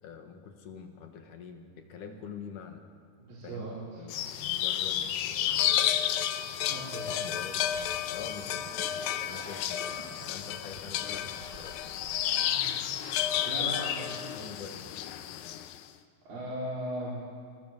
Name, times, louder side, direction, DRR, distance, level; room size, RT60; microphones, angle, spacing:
voice 1, 0.0-2.8 3.4-4.1 4.4-6.0 7.1-8.6 8.9-11.8 13.6-14.9, left 6 dB, 65° left, 5 dB, 3.2 m, -45 dB
voice 2, 3.3-4.0 6.6-7.1 12.5-12.9 13.5-14.2 16.3-17.2, right 1 dB, 70° right, -7 dB, 5.8 m, -38 dB
sound 1, 4.1-15.8, left 11 dB, 85° left, 2.7 m, -31 dB
sound 2, 7.3-12.2, right 4 dB, 45° right, 1.8 m, -50 dB
24.0 x 24.0 x 7.5 m, 2.1 s
omnidirectional pair, 4.1 m